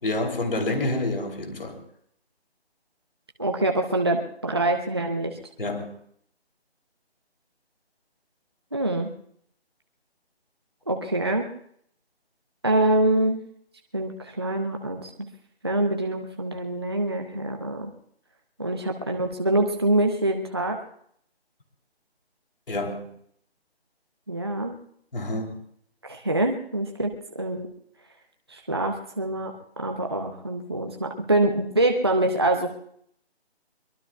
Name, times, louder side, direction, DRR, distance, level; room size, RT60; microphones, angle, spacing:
voice 1, 0.0-1.8 5.6-5.9 22.7-23.0 25.1-25.6, left 2 dB, 55° left, 3 dB, 3.1 m, -28 dB
voice 2, 3.4-5.4 8.7-9.1 10.9-11.5 12.6-13.4 13.9-15.1 15.6-17.9 18.6-20.8 24.3-24.8 26.0-27.7 28.5-32.7, right 1 dB, 25° right, 3 dB, 0.7 m, -25 dB
23.0 x 22.5 x 2.3 m, 0.66 s
figure-of-eight pair, 175°, 32 cm